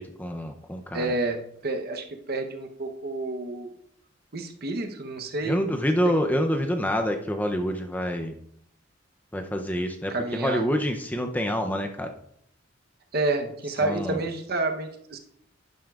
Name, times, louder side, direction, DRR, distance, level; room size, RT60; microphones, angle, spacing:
voice 1, 0.0-1.1 5.5-8.4 9.3-12.1 13.8-14.2, equal, 10° left, 5 dB, 0.5 m, -27 dB
voice 2, 0.9-3.7 4.3-5.6 6.0-6.2 10.1-10.7 13.1-15.2, right 2 dB, 55° right, 5 dB, 0.9 m, -29 dB
11.5 x 9.2 x 2.4 m, 0.71 s
head